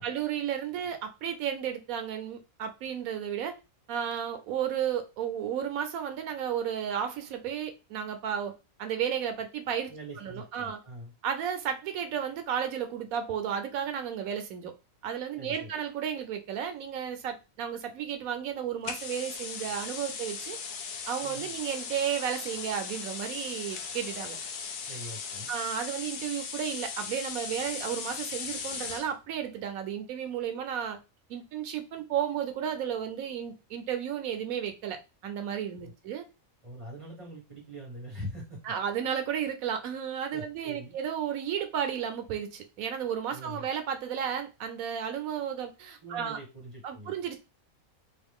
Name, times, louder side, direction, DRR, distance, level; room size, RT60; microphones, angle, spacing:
voice 1, 0.0-3.6 3.9-8.5 8.8-9.9 10.2-10.8 11.2-14.7 15.0-20.6 21.1-24.4 25.5-31.0 31.3-36.2 38.7-46.4 46.8-47.4, right 8 dB, 90° right, 7 dB, 1.1 m, -33 dB
voice 2, 9.9-11.1 15.4-15.7 21.2-21.5 24.9-25.5 35.8-35.9 36.6-38.6 40.3-40.9 43.3-43.7 46.0-47.1, equal, 25° right, -3 dB, 1.7 m, -43 dB
sound 1, 18.8-29.1, left 6 dB, 75° left, 0.4 m, -38 dB
3.0 x 2.5 x 3.5 m, 0.27 s
omnidirectional pair, 1.4 m